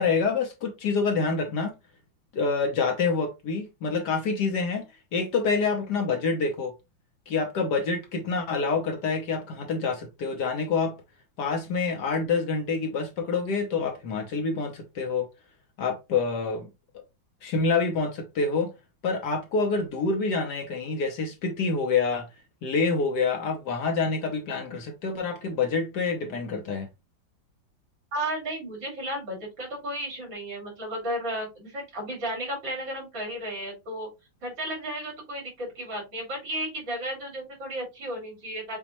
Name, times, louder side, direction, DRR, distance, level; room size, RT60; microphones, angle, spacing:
voice 1, 0.0-1.7 2.3-4.8 5.1-6.7 7.3-10.9 11.4-15.3 15.8-16.7 17.4-18.7 19.0-22.3 22.6-26.9, left 4 dB, 65° left, 1.3 m, -27 dB
voice 2, 28.1-34.1 34.4-38.8, right 1 dB, 70° right, 3.8 m, -33 dB
7.2 x 2.4 x 2.9 m
omnidirectional pair, 2.1 m